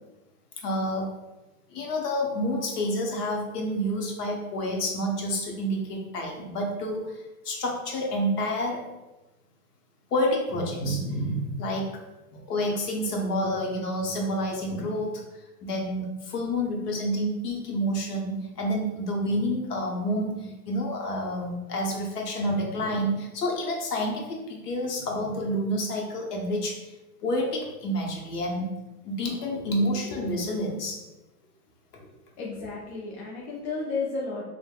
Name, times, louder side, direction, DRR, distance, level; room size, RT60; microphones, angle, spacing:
voice 1, 0.6-1.1 1.7-8.8 10.1-12.0 12.3-15.2 15.6-26.8 27.2-28.7 29.0-31.0, equal, 75° left, 0 dB, 0.9 m, -29 dB
voice 2, 29.8-30.3 32.4-34.4, left 3 dB, 45° left, -4 dB, 0.5 m, -33 dB
3.2 x 2.1 x 2.2 m, 1.1 s
hypercardioid pair, 145°, 46 cm